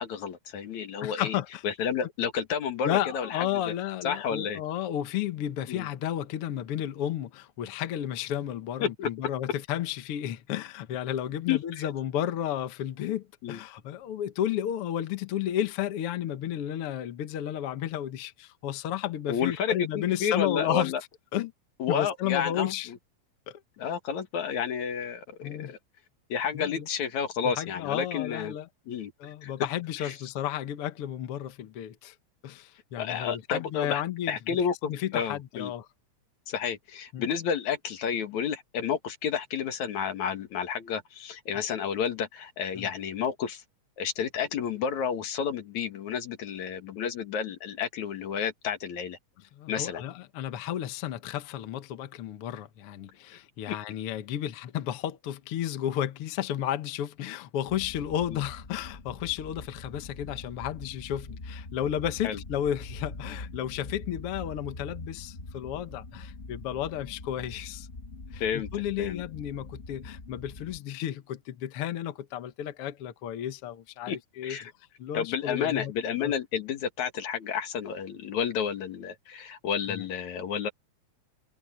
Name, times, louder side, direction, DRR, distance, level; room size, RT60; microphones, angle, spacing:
voice 1, 0.0-1.4 1.6-3.7 4.0-4.6 5.7-5.9 8.8-9.1 11.5-11.9 13.4-13.6 19.3-21.0 21.8-23.0 23.8-25.8 26.3-28.5 28.9-29.1 29.4-29.5 30.0-30.1 33.0-34.0 34.3-35.7 36.5-43.6 44.0-49.2 49.7-50.0 53.7-53.8 58.3-58.4 62.2-62.4 68.4-68.7 69.0-69.2 74.1-74.2 74.4-74.7 75.1-80.7, left 7 dB, 80° left, 3.1 m, -31 dB
voice 2, 1.0-1.6 2.8-20.9 21.3-21.5 21.9-22.9 23.5-23.6 25.4-25.7 26.5-26.9 27.4-28.7 29.2-32.2 32.4-34.4 34.9-35.9 37.1-37.3 42.8-42.9 49.5-67.9 68.3-74.6 75.0-75.9 76.2-76.3 79.9-80.1, left 11 dB, 60° left, 1.9 m, -32 dB
sound 1, 57.7-70.8, left 2 dB, 25° left, 1.7 m, -43 dB
omnidirectional pair, 3.3 m